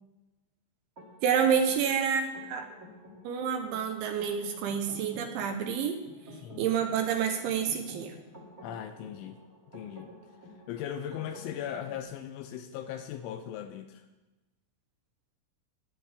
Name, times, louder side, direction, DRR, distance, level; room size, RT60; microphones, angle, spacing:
sound 1, 1.0-12.0, equal, 30° right, 1.5 m, -51 dB
voice 1, 1.2-2.7 3.2-6.0 6.6-8.2, right 7 dB, 75° right, 5 dB, 3.0 m, -28 dB
voice 2, 8.6-9.4 9.7-10.1 10.7-14.0, left 9 dB, 85° left, 6 dB, 2.9 m, -38 dB
21.5 x 8.3 x 3.5 m, 1.1 s
omnidirectional pair, 5.9 m